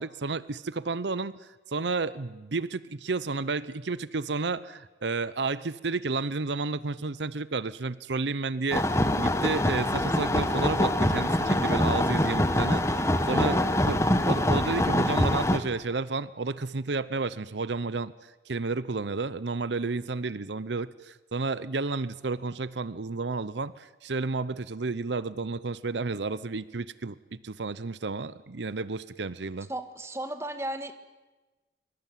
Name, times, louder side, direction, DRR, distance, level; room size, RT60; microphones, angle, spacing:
voice 1, 0.0-14.0 14.3-29.7, right 3 dB, 85° right, 17 dB, 0.8 m, -31 dB
sound 1, 8.7-15.6, left 1 dB, 15° left, 1.4 m, -24 dB
voice 2, 13.3-13.6 29.7-30.9, right 1 dB, 15° right, 9 dB, 1.7 m, -34 dB
24.0 x 23.0 x 9.3 m, 1.1 s
head